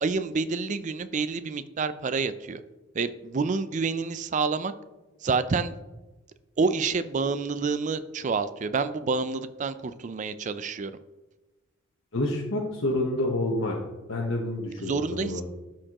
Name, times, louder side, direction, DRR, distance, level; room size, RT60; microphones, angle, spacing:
voice 1, 0.0-2.6 2.9-4.7 5.2-5.8 6.6-10.9 14.8-15.4, right 4 dB, 40° right, 12 dB, 0.4 m, -28 dB
voice 2, 12.1-13.7 14.1-15.4, left 1 dB, 85° left, -3 dB, 1.1 m, -28 dB
12.0 x 4.4 x 2.9 m, 1.1 s
head